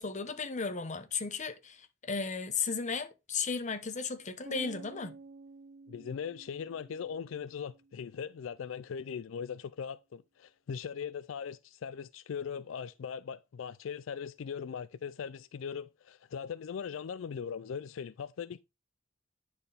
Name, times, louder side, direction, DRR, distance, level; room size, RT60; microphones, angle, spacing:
voice 1, 0.0-5.2, left 5 dB, 40° left, 1.0 m, -35 dB
sound 1, 4.5-8.4, right 3 dB, 65° right, 0.7 m, -52 dB
voice 2, 5.9-18.6, left 7 dB, 85° left, 0.4 m, -40 dB
9.9 x 4.4 x 3.3 m
head